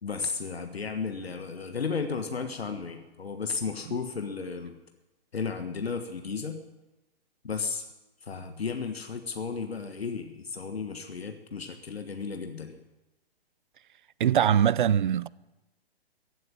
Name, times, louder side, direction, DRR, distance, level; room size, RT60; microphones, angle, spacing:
voice 1, 0.0-4.8 5.3-6.6 7.4-7.9 8.2-12.8, left 5 dB, 70° left, 1.4 m, -34 dB
voice 2, 14.2-15.3, right 9 dB, 50° right, 0.5 m, -22 dB
15.0 x 7.9 x 9.2 m
figure-of-eight pair, 120°, 32 cm